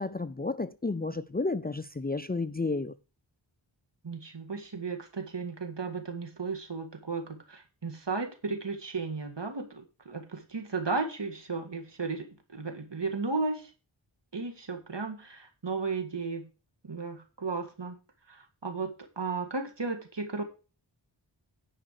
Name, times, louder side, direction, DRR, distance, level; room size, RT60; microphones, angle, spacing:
voice 1, 0.0-3.0, left 3 dB, 20° left, 0.4 m, -32 dB
voice 2, 4.0-13.7 14.3-16.5 16.8-18.0 18.3-20.4, right 4 dB, 65° right, 1.9 m, -35 dB
10.5 x 4.9 x 6.6 m
wide cardioid pair, 40°, 46 cm